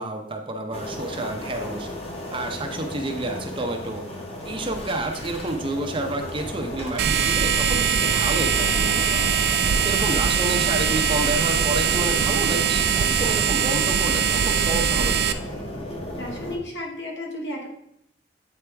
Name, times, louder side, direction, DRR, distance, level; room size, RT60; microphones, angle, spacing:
voice 1, 0.0-1.9 2.3-4.0 4.4-9.4 9.8-15.4, right 2 dB, 30° right, 4 dB, 0.7 m, -29 dB
sound 1, 0.7-16.6, left 1 dB, 35° left, 1.0 m, -35 dB
sound 2, 7.0-15.3, right 7 dB, 60° right, 0.4 m, -22 dB
voice 2, 16.2-17.7, left 1 dB, 75° left, -2 dB, 1.8 m, -33 dB
8.4 x 4.3 x 3.4 m, 0.73 s
head